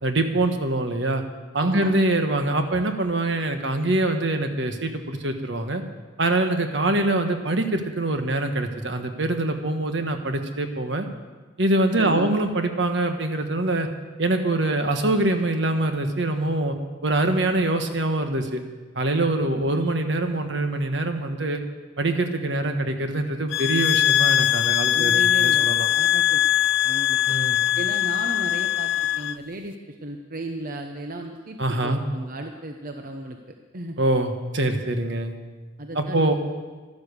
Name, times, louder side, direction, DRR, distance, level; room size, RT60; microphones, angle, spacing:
voice 1, 0.0-1.2 1.5-5.8 6.2-11.1 11.6-13.9 14.2-16.7 17.0-18.6 18.9-21.6 22.0-25.1 25.4-25.9 27.3-27.6 31.6-32.0 34.0-35.3 35.9-36.3, right 2 dB, 70° right, 6 dB, 1.4 m, -24 dB
voice 2, 1.6-1.9 12.0-12.3 24.9-26.5 26.8-27.2 27.7-34.0 35.8-36.3, right 1 dB, 45° right, 4 dB, 0.9 m, -35 dB
sound 1, 23.5-29.4, left 12 dB, 70° left, 0.4 m, -21 dB
12.5 x 12.0 x 6.7 m, 1.3 s
head